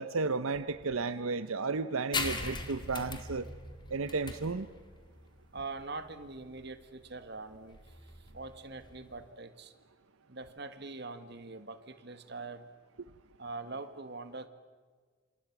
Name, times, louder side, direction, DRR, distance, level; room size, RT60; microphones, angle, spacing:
voice 1, 0.0-3.5 3.9-4.7, right 4 dB, 90° right, 12 dB, 0.8 m, -33 dB
sound 1, 2.1-9.3, left 3 dB, 20° left, 2.1 m, -40 dB
voice 2, 5.5-7.8 8.3-9.7 10.3-12.7 13.4-14.5, right 3 dB, 55° right, 10 dB, 1.6 m, -43 dB
28.5 x 27.5 x 6.0 m, 1.5 s
head